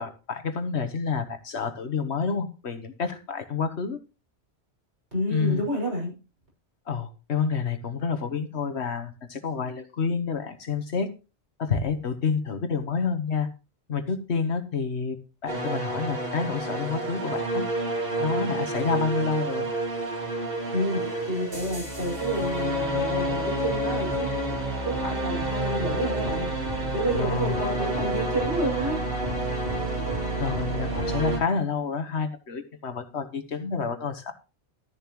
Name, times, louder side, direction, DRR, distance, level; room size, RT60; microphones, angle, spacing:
voice 1, 0.0-4.0 5.3-5.6 6.9-11.1 11.6-13.5 13.9-15.2 15.4-17.6 18.2-19.6 27.1-27.6 30.4-34.3, left 5 dB, 75° left, 8 dB, 1.6 m, -29 dB
voice 2, 5.1-6.1 20.7-24.3 24.8-29.0, right 1 dB, 85° right, -2 dB, 6.5 m, -29 dB
sound 1, 15.5-31.4, right 1 dB, 55° right, 3.7 m, -29 dB
13.0 x 10.5 x 3.1 m, 0.32 s
omnidirectional pair, 1.1 m